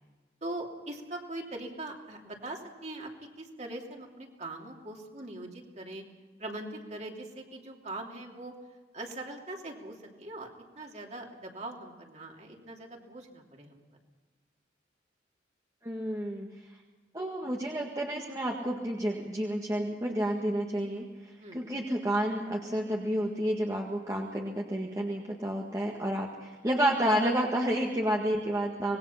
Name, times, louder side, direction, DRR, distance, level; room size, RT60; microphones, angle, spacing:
voice 1, 0.4-3.1 3.4-6.0 6.4-8.5 8.9-10.5 10.7-13.8 21.4-21.6, right 2 dB, 35° right, 1 dB, 3.0 m, -41 dB
voice 2, 15.8-16.5 17.1-29.0, right 1 dB, 20° right, -1 dB, 1.7 m, -30 dB
25.0 x 20.5 x 5.8 m, 1.3 s
head